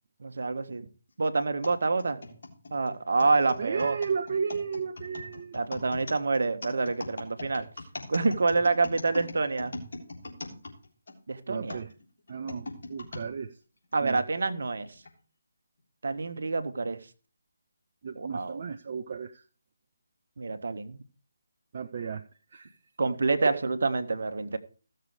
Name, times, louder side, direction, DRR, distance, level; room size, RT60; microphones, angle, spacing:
voice 1, 0.2-0.9 1.2-2.2 2.7-4.0 5.5-7.7 8.1-9.8 11.3-11.8 13.9-14.9 16.0-17.0 18.1-18.6 20.4-21.0 23.0-24.6, right 3 dB, 65° right, 1.3 m, -27 dB
sound 1, 1.6-11.2 11.7-13.3 13.9-14.0 14.9-15.1, left 2 dB, 55° left, 3.4 m, -41 dB
voice 2, 3.6-5.6 11.5-11.9 12.3-13.6 14.0-14.2 18.0-19.4 21.7-22.2 22.5-22.8 23.4-23.6, right 6 dB, 45° right, 0.6 m, -34 dB
15.5 x 6.8 x 4.9 m
figure-of-eight pair, 150°, 0 cm